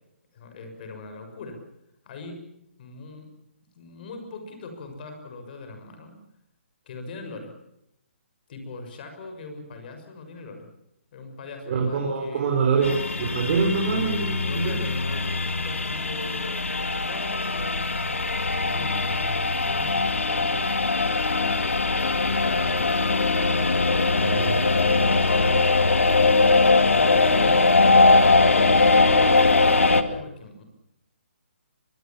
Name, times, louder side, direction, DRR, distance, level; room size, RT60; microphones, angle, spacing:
voice 1, 0.3-1.6 2.0-2.4 2.8-3.3 3.7-6.2 6.9-7.5 8.5-10.7 11.1-12.9 14.4-16.7 17.0-20.8 21.2-21.5 22.4-23.0 23.8-24.1 24.5-26.0 26.9-30.6, left 3 dB, 45° left, 5 dB, 6.4 m, -40 dB
voice 2, 11.7-14.8 24.2-24.5, right 5 dB, 45° right, 1 dB, 5.4 m, -25 dB
sound 1, 12.8-30.0, left 3 dB, 85° left, 2.3 m, -21 dB
sound 2, 22.1-30.0, left 12 dB, 10° left, 2.3 m, -44 dB
24.0 x 22.5 x 7.4 m, 0.82 s
hypercardioid pair, 145°, 7 cm